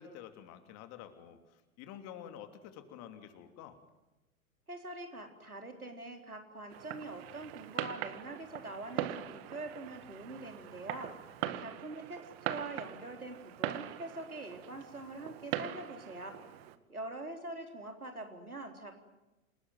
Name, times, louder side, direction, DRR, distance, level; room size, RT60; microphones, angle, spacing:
voice 1, 0.0-3.8 11.4-11.6, left 9 dB, 35° left, 7 dB, 2.9 m, -49 dB
voice 2, 4.7-11.1 11.6-16.4 16.9-18.9, right 2 dB, 90° right, 4 dB, 4.1 m, -44 dB
Fireworks, 6.7-16.8, right 13 dB, 45° right, 1.8 m, -41 dB
28.0 x 19.0 x 9.5 m, 1.0 s
figure-of-eight pair, 100°, 42 cm